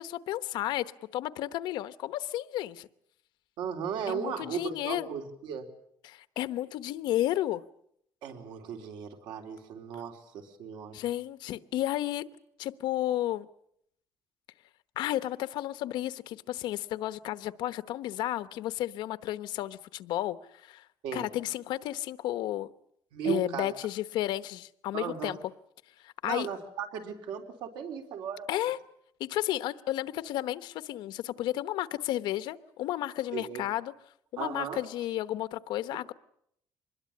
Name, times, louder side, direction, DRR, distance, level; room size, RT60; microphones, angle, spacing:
voice 1, 0.0-2.9 4.1-5.1 6.0-7.6 10.9-12.3 12.6-13.5 15.0-20.8 21.1-22.7 23.2-25.4 26.0-26.5 28.5-28.8 29.2-33.9 34.3-36.1, left 14 dB, 80° left, 13 dB, 1.0 m, -32 dB
voice 2, 3.6-5.7 8.2-11.0 21.0-21.3 23.1-23.7 24.9-25.4 26.2-28.5 33.3-33.6 34.4-34.8, right 7 dB, 85° right, 4 dB, 3.8 m, -36 dB
25.0 x 21.5 x 8.6 m, 0.72 s
cardioid pair, 170°, 8 cm